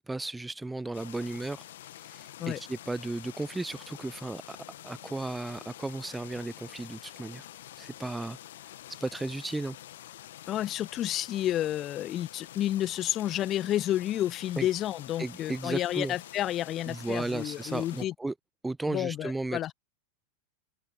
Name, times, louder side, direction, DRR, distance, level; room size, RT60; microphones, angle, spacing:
voice 1, 0.0-1.6 1.9-4.6 4.8-7.5 7.8-8.4 8.9-9.8 14.6-14.7 15.2-16.1 16.9-18.3 18.6-19.7, right 2 dB, 5° right, 0.4 m, -35 dB
sound 1, 0.9-18.1, left 13 dB, 60° left, 2.1 m, -47 dB
voice 2, 10.5-18.1 18.9-19.7, left 12 dB, 30° left, 1.3 m, -30 dB
figure-of-eight pair, 90°, 0 cm